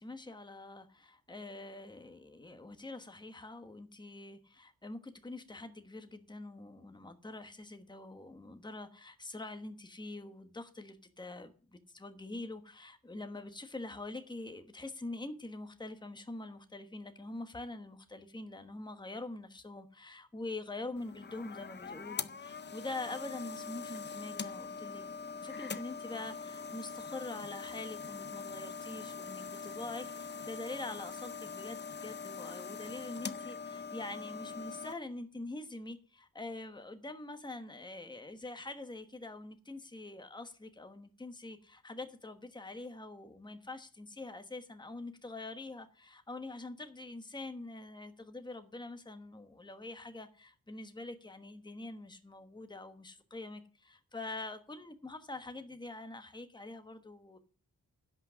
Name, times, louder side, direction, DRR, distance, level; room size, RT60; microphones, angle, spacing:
voice 1, 0.0-25.0 25.4-57.4, left 2 dB, 15° left, 8 dB, 1.2 m, -45 dB
sound 1, 21.0-34.9, left 5 dB, 30° left, 0.5 m, -43 dB
11.0 x 6.2 x 8.3 m, 0.37 s
wide cardioid pair, 150°, 35 cm